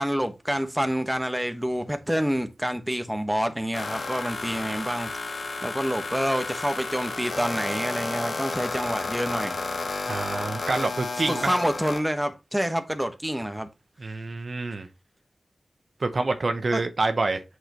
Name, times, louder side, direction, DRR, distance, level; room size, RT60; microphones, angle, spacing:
voice 1, 0.0-9.6 11.3-13.7 16.7-16.8, equal, 5° right, 1.3 m, -28 dB
sound 1, 3.7-12.0, left 3 dB, 70° left, 1.3 m, -32 dB
voice 2, 10.1-11.6 14.0-14.9 16.0-17.4, right 3 dB, 60° right, 0.9 m, -27 dB
7.9 x 6.4 x 3.1 m
wide cardioid pair, 65°, 0 cm